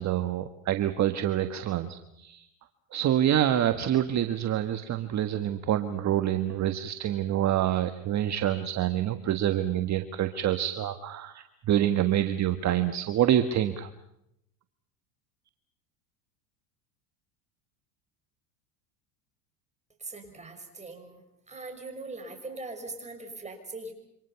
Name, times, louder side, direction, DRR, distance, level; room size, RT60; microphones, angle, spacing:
voice 1, 0.0-2.5 2.9-13.9, right 11 dB, 40° right, 9 dB, 1.5 m, -27 dB
voice 2, 20.0-21.2 21.5-23.9, right 3 dB, 15° right, 4 dB, 6.0 m, -41 dB
27.5 x 26.0 x 5.8 m, 0.80 s
supercardioid pair, 105°, 43 cm